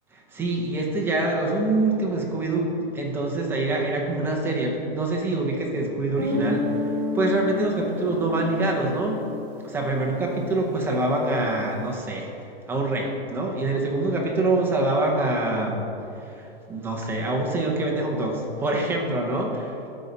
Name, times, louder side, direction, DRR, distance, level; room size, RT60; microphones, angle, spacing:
voice 1, 0.3-6.7 7.1-9.2 9.6-12.3 12.7-15.9 16.2-19.8, right 2 dB, 5° right, -1 dB, 0.6 m, -25 dB
Guitar, 6.2-10.7, left 2 dB, 45° right, 2.0 m, -31 dB
12.0 x 4.2 x 5.1 m, 2.8 s
hypercardioid pair, 160°, 31 cm